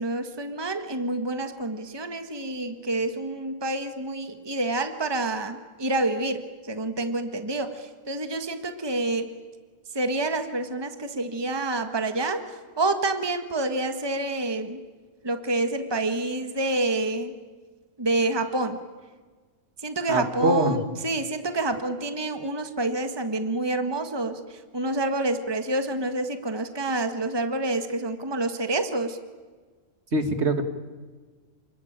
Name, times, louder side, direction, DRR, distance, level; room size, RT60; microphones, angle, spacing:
voice 1, 0.0-9.3 9.9-14.8 15.2-17.4 18.0-18.8 19.8-29.2, right 2 dB, 20° right, 7 dB, 1.6 m, -28 dB
voice 2, 20.1-20.8 30.1-30.6, right 2 dB, 55° right, 7 dB, 2.2 m, -23 dB
29.0 x 21.0 x 8.9 m, 1.4 s
omnidirectional pair, 1.3 m